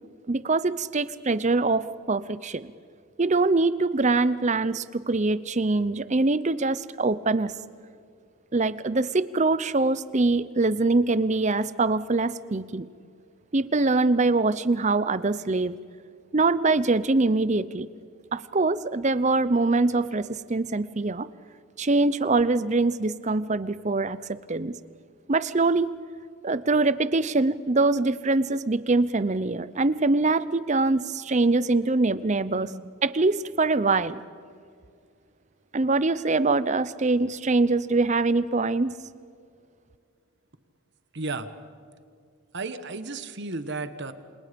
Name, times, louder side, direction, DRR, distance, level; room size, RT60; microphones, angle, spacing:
voice 1, 0.3-2.7 3.2-7.5 8.5-12.9 13.5-15.8 16.3-17.9 18.3-21.3 21.8-24.8 25.3-25.9 26.4-32.7 33.0-34.2 35.7-39.0, right 3 dB, 30° right, 16 dB, 0.6 m, -23 dB
voice 2, 32.6-32.9 41.1-41.5 42.5-44.1, right 3 dB, 50° right, 11 dB, 1.3 m, -34 dB
29.0 x 27.5 x 5.3 m, 2.3 s
head